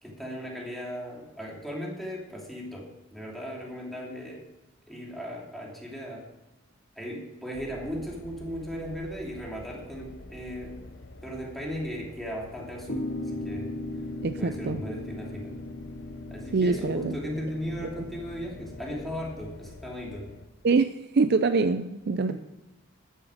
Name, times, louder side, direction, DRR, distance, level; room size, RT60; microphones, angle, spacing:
voice 1, 0.0-4.4 4.9-6.3 6.9-10.8 11.2-13.7 14.4-15.6 16.3-20.3 22.3-22.4, equal, ahead, -3 dB, 2.8 m, -37 dB
sound 1, 7.5-20.5, left 2 dB, 55° left, 1.0 m, -47 dB
sound 2, 12.9-19.3, left 1 dB, 75° left, 2.5 m, -38 dB
voice 2, 14.2-14.8 16.5-17.1 17.8-17.9 20.6-22.3, right 4 dB, 50° right, 10 dB, 0.4 m, -24 dB
13.0 x 10.0 x 5.0 m, 1.0 s
head